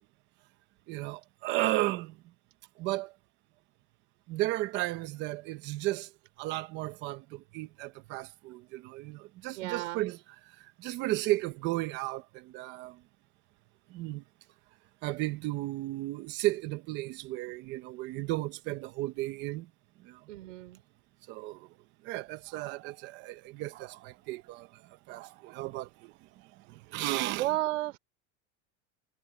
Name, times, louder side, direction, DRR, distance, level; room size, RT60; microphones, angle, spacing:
voice 1, 0.9-2.2 2.8-3.1 4.3-6.1 6.4-10.2 10.8-13.0 13.9-14.2 15.0-19.7 20.0-20.2 21.3-21.7 22.0-24.7 25.1-26.1 26.7-27.6, right 18 dB, 30° right, 0.9 m, -34 dB
voice 2, 9.6-10.0 20.3-20.8 27.4-28.0, right 16 dB, 85° right, 5.4 m, -32 dB
supercardioid pair, 175°, 37 cm